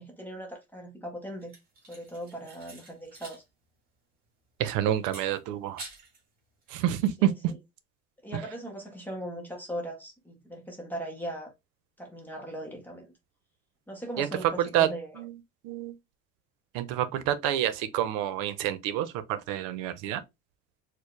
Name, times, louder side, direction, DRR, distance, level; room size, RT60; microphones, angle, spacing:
voice 1, 0.0-1.5 1.9-3.4 7.2-7.6 8.2-11.5 12.0-13.1 13.9-15.2, right 1 dB, 5° left, 0.6 m, -39 dB
sound 1, 1.4-3.4 3.7-3.8 5.0-6.2 6.6-7.1, right 3 dB, 30° right, 1.6 m, -48 dB
voice 2, 4.6-5.8 6.7-7.3 14.2-14.3 14.6-14.9 15.2-15.3 15.6-15.9 16.7-20.2, right 11 dB, 85° right, 0.6 m, -28 dB
4.5 x 2.1 x 3.0 m
cardioid pair, 175°, 31 cm